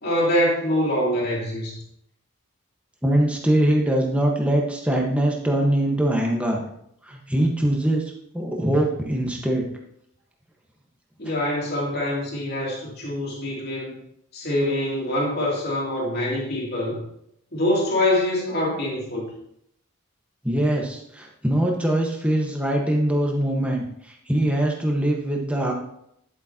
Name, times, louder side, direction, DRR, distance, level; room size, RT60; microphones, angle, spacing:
voice 1, 0.0-1.8 11.2-13.9 14.3-17.0 17.5-19.3, left 1 dB, 50° left, -4 dB, 2.8 m, -24 dB
voice 2, 3.0-6.6 7.0-9.6 20.4-25.7, right 1 dB, 5° right, 0 dB, 1.3 m, -22 dB
10.5 x 8.1 x 2.9 m, 0.74 s
head